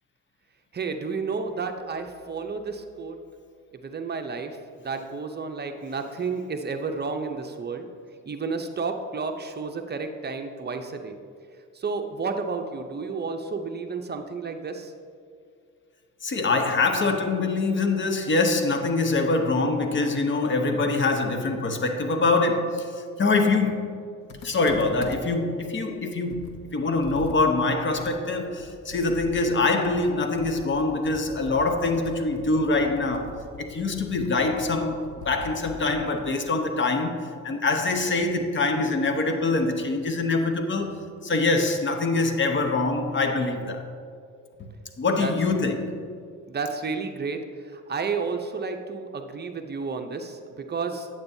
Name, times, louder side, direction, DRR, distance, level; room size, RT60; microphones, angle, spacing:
voice 1, 0.7-3.2 3.7-7.9 8.3-11.1 11.7-14.9 45.2-45.3 46.5-47.4 47.6-51.1, right 4 dB, 35° right, 6 dB, 0.6 m, -31 dB
voice 2, 16.2-23.9 24.4-43.9 44.6-44.7 45.0-46.1, left 3 dB, 40° left, 6 dB, 0.8 m, -24 dB
Computer keyboard, 24.3-25.5 25.9-26.0 26.3-29.6 29.8-36.3, left 2 dB, 85° left, 0.9 m, -43 dB
8.8 x 8.5 x 2.7 m, 2.3 s
cardioid pair, 90°, 30 cm